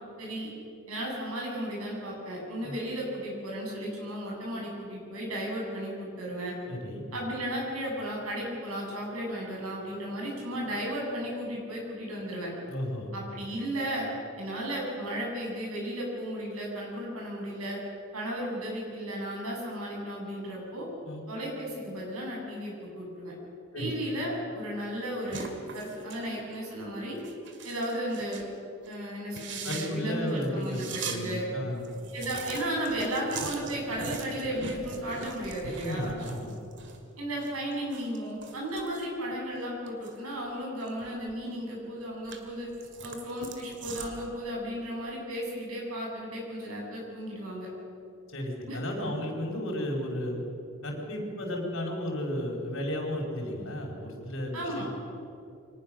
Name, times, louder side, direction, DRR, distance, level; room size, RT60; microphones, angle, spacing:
voice 1, 0.2-0.5 0.9-6.5 7.1-12.5 13.1-14.1 14.4-17.8 18.1-20.9 21.3-23.3 23.7-27.2 27.6-28.4 28.9-31.4 32.1-36.1 37.2-42.7 43.0-47.7 48.7-48.8 54.5-54.8, equal, 85° right, -2 dB, 7.4 m, -34 dB
voice 2, 6.7-7.0 12.7-13.1 21.0-21.3 23.7-23.9 29.6-31.9 35.8-36.5 48.3-50.4 50.8-54.8, left 1 dB, 65° left, 0 dB, 5.1 m, -33 dB
sound 1, 25.3-26.2 26.5-26.7 27.2-28.5 28.8-28.9 29.3-31.2 31.5-31.6 31.8-37.0 37.3-40.2 40.6-41.6 42.0-44.3, right 4 dB, 55° right, 2.2 m, -41 dB
24.5 x 19.0 x 6.5 m, 2.5 s
head